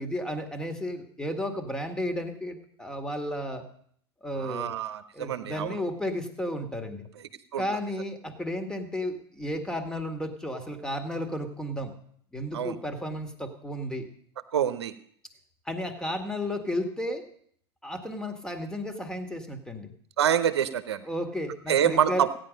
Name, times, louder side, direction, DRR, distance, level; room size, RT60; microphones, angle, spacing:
voice 1, 0.0-3.7 4.2-4.7 5.1-7.1 7.6-11.9 12.3-14.1 15.7-17.2 17.8-19.9 21.0-22.3, left 1 dB, 5° left, 6 dB, 1.9 m, -33 dB
voice 2, 4.3-5.8 7.5-7.6 12.5-12.8 14.5-14.9 20.2-21.0 21.7-22.3, right 9 dB, 75° right, 12 dB, 0.8 m, -26 dB
15.5 x 9.8 x 5.2 m, 0.64 s
hypercardioid pair, 85°, 14 cm